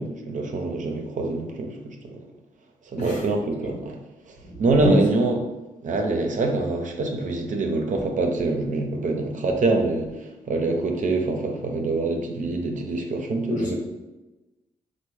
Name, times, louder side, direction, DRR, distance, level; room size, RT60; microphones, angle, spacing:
voice 1, 0.0-2.2 2.9-4.0 4.6-5.4 5.8-10.1 10.5-13.8, right 2 dB, 55° right, 3 dB, 0.5 m, -25 dB
voice 2, 3.0-3.3 3.6-3.7 4.4-5.0 13.5-13.8, equal, 50° left, -1 dB, 1.0 m, -27 dB
3.3 x 2.1 x 3.1 m, 1.1 s
supercardioid pair, 45°, 16 cm